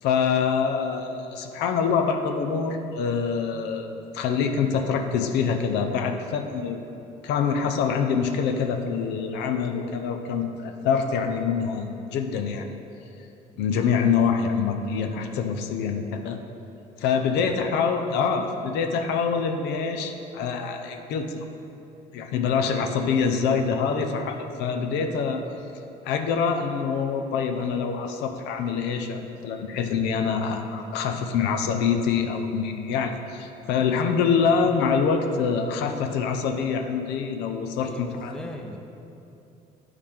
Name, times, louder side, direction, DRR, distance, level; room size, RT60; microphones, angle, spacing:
voice 1, 0.0-6.8 7.2-12.7 13.6-16.4 17.0-21.5 22.1-25.4 26.0-38.3, left 6 dB, 90° left, 5 dB, 0.6 m, -25 dB
voice 2, 17.3-17.7 22.8-22.9 37.8-38.8, left 1 dB, 5° left, 3 dB, 0.6 m, -40 dB
10.0 x 4.8 x 3.6 m, 2.8 s
cardioid pair, 110°, 17 cm